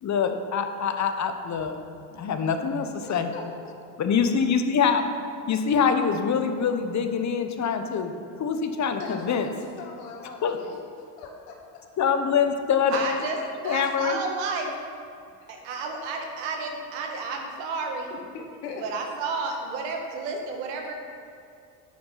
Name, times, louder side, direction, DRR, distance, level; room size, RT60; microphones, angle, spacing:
voice 1, 0.0-1.8 2.1-3.3 4.0-5.0 5.5-9.5 10.4-10.6 12.0-13.2 13.6-14.2, left 6 dB, 35° left, 7 dB, 1.0 m, -25 dB
voice 2, 3.0-3.5 8.9-10.8 11.2-11.6 17.1-17.2 18.1-18.8, left 4 dB, 75° left, 0 dB, 1.9 m, -40 dB
voice 3, 12.9-13.4 13.6-14.7 15.5-18.1 18.8-21.0, right 4 dB, 65° right, 2 dB, 1.8 m, -31 dB
10.0 x 8.7 x 4.0 m, 2.6 s
hypercardioid pair, 70°, 47 cm